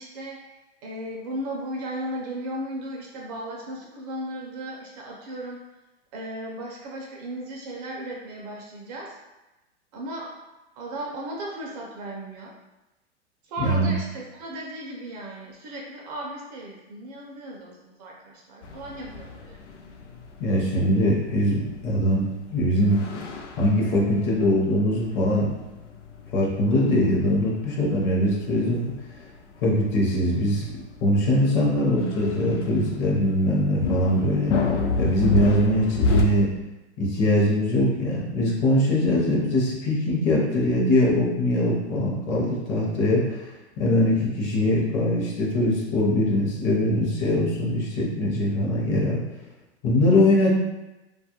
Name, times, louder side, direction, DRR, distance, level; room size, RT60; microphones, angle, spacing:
voice 1, 0.0-5.6 6.1-9.2 9.9-10.3 10.8-12.6 13.4-19.6, right 1 dB, 35° right, -2 dB, 0.4 m, -36 dB
voice 2, 13.6-14.0 20.4-23.0 23.6-25.5 26.3-28.9 29.6-30.7 31.0-34.5 35.0-36.5 37.0-49.2 49.8-50.6, left 1 dB, 30° left, -3 dB, 0.6 m, -22 dB
sound 1, 18.6-36.2, left 3 dB, 85° left, 0.5 m, -31 dB
2.3 x 2.1 x 2.8 m, 1.0 s
hypercardioid pair, 120°, 35 cm